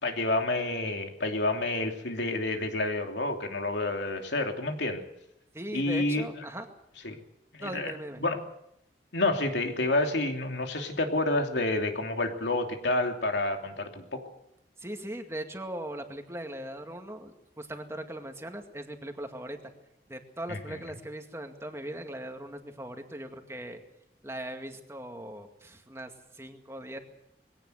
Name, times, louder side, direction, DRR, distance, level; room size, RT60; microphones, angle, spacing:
voice 1, 0.0-5.0 5.7-6.3 7.0-7.2 7.5-7.9 8.2-8.4 9.1-14.3 20.5-20.8, left 2 dB, 90° left, 4 dB, 3.0 m, -29 dB
voice 2, 5.5-6.7 7.6-8.2 14.8-19.7 20.1-23.8 24.2-27.0, right 1 dB, 15° right, 5 dB, 2.1 m, -39 dB
21.5 x 17.5 x 8.0 m, 0.79 s
head